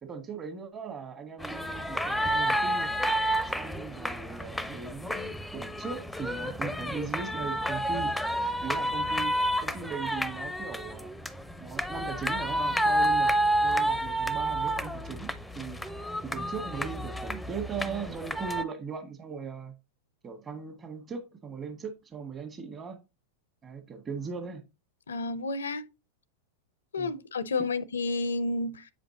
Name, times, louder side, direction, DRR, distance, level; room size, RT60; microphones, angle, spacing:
voice 1, 0.0-2.9 3.5-8.1 8.6-9.4 9.6-11.1 11.6-13.3 13.6-15.8 16.2-19.7 20.2-23.0 23.6-24.6 27.0-27.2, right 5 dB, 25° right, 1.5 m, -39 dB
sound 1, 1.4-18.6, right 1 dB, 5° left, 0.6 m, -30 dB
voice 2, 25.1-25.8 26.9-28.9, left 3 dB, 90° left, 0.5 m, -31 dB
8.2 x 5.1 x 2.7 m
hypercardioid pair, 105°, 0 cm